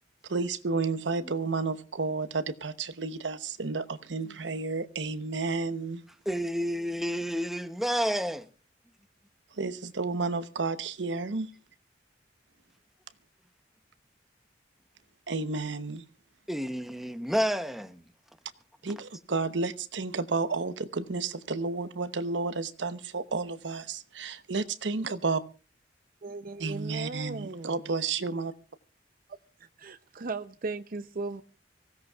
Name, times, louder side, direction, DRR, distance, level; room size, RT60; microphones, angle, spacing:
voice 1, 0.3-6.0 9.6-11.5 15.3-16.0 18.8-25.4 26.6-28.5, right 4 dB, 80° right, 0.9 m, -31 dB
voice 2, 6.3-8.5 16.5-18.0, equal, ahead, 0.8 m, -30 dB
voice 3, 26.2-27.9 29.8-31.4, right 3 dB, 50° right, 0.6 m, -37 dB
25.0 x 16.5 x 2.4 m
head